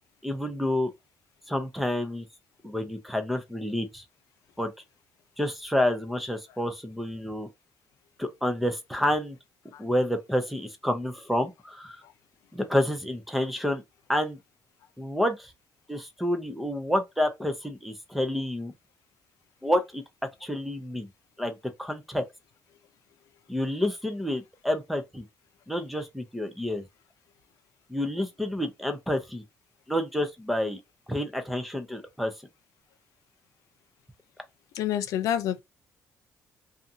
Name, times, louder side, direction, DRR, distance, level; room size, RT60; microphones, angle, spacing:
voice 1, 0.2-0.9 1.5-2.2 2.6-4.0 4.6-4.7 5.4-7.5 8.2-9.4 9.8-12.0 12.5-13.8 14.1-14.4 15.0-15.5 15.9-18.7 19.6-20.0 20.4-21.1 21.4-22.2 23.5-25.2 25.7-26.8 27.9-29.4 29.9-30.8 31.1-32.3, left 1 dB, ahead, 0.4 m, -29 dB
voice 2, 34.7-35.6, left 10 dB, 80° left, 0.4 m, -28 dB
2.6 x 2.4 x 2.6 m
cardioid pair, 175°, 6 cm